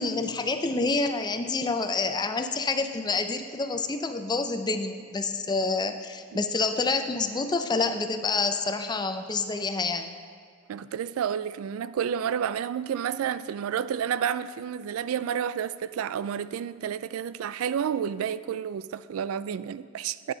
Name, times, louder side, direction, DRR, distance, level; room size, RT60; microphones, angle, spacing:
voice 1, 0.0-10.2, left 3 dB, 20° left, 0.5 m, -28 dB
voice 2, 10.7-20.3, right 8 dB, 90° right, 0.3 m, -30 dB
9.6 x 9.4 x 3.9 m
head